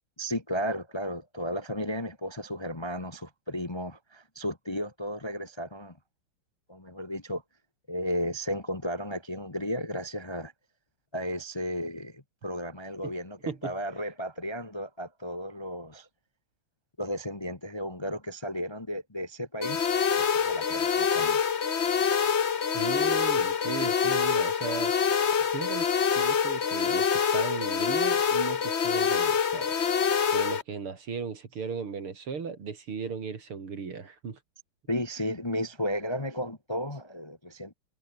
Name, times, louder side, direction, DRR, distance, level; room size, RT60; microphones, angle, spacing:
voice 1, 0.2-6.0 6.7-7.4 7.9-10.5 11.1-16.1 17.0-19.9 20.2-21.4 34.9-37.7, equal, 15° left, 1.1 m, -34 dB
sound 1, 19.6-30.6, left 6 dB, 40° left, 1.1 m, -26 dB
voice 2, 22.7-24.9 25.4-25.9 26.1-29.7 30.3-34.4, right 5 dB, 75° right, 3.8 m, -36 dB
omnidirectional pair, 2.4 m